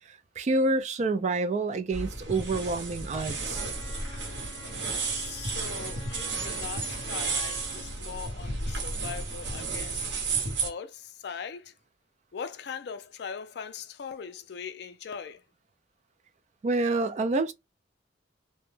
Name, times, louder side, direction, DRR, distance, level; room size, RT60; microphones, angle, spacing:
voice 1, 0.1-3.6 16.6-17.5, right 2 dB, 35° right, 0.3 m, -28 dB
sound 1, 1.9-10.7, right 3 dB, 65° right, 0.9 m, -33 dB
Wind instrument woodwind instrument, 3.5-8.0, left 5 dB, 25° left, 0.7 m, -48 dB
voice 2, 5.1-10.1 10.6-11.7 12.3-15.4, left 6 dB, 60° left, 0.4 m, -40 dB
2.1 x 2.1 x 3.1 m
head